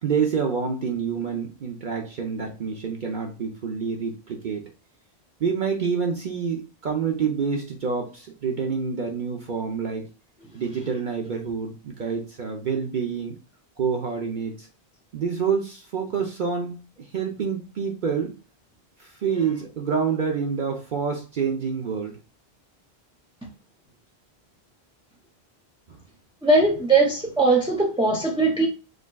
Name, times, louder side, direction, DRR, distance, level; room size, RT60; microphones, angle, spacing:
voice 1, 0.0-4.7 5.4-10.1 10.5-13.4 13.8-14.7 15.1-18.3 19.0-22.2 25.9-26.0, right 6 dB, 55° right, 0.8 m, -27 dB
voice 2, 26.4-28.7, right 3 dB, 5° right, 0.6 m, -20 dB
5.0 x 3.6 x 2.2 m
omnidirectional pair, 1.1 m